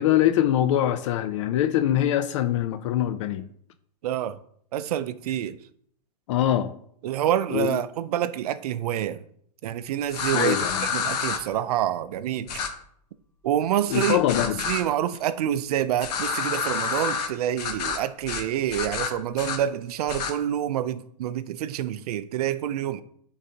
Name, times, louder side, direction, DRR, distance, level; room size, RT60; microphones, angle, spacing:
voice 1, 0.0-3.5 6.3-6.7 7.5-7.8 10.3-10.9 13.9-14.6, left 12 dB, 45° left, 0.4 m, -23 dB
voice 2, 4.0-4.4 4.7-5.6 7.0-9.2 9.6-10.6 10.9-12.6 13.4-14.2 14.7-23.0, right 11 dB, 65° right, 0.5 m, -27 dB
sound 1, 10.1-11.4 12.5-12.7 13.9-14.8 16.0-17.3 17.6-18.0 18.3-18.4 18.7-19.6 20.1-20.3, left 6 dB, 70° left, 1.1 m, -28 dB
9.3 x 4.0 x 2.8 m
hypercardioid pair, 150°, 21 cm